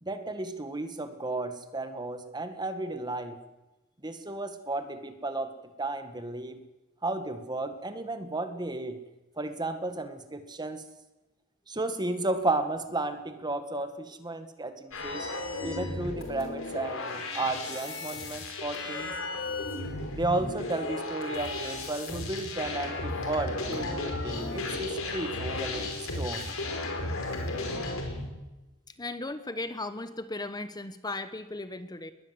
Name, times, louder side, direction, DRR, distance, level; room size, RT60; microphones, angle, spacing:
voice 1, 0.0-3.4 4.0-5.5 5.8-6.6 7.0-9.0 9.4-10.8 11.7-15.3 15.6-19.1 20.1-26.5, right 2 dB, 20° right, 8 dB, 1.8 m, -33 dB
sound 1, 14.9-28.3, left 2 dB, 65° left, 5.1 m, -34 dB
voice 2, 29.0-32.1, left 2 dB, 20° left, 11 dB, 1.1 m, -36 dB
21.0 x 20.5 x 7.9 m, 1.1 s
head